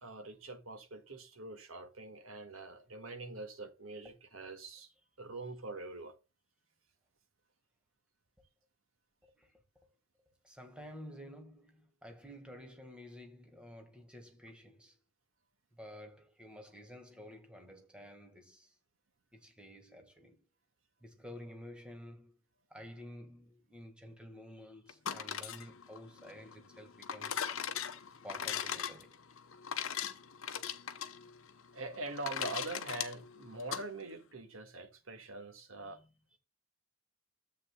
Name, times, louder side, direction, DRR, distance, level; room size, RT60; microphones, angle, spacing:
voice 1, 0.0-4.9 5.2-6.1 31.7-36.0, right 2 dB, 70° right, 1.7 m, -44 dB
voice 2, 9.2-9.6 10.4-15.0 15.7-18.7 19.3-20.4 21.0-22.4 22.7-27.4 28.2-29.2 35.7-36.4, equal, 5° right, 1.6 m, -51 dB
sound 1, 24.9-33.8, left 8 dB, 65° left, 0.8 m, -40 dB
13.0 x 7.8 x 2.2 m
head